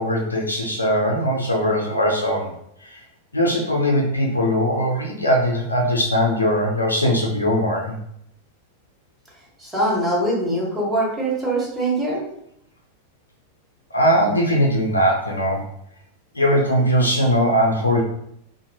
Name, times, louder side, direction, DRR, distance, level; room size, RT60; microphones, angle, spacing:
voice 1, 0.0-2.5 2.9-3.0 3.3-8.0 13.9-15.6 16.3-18.0, equal, 80° left, 0 dB, 0.5 m, -20 dB
voice 2, 9.6-12.2, right 1 dB, 5° right, -5 dB, 1.2 m, -23 dB
2.6 x 2.4 x 2.6 m, 0.73 s
figure-of-eight pair, 90°, 0 cm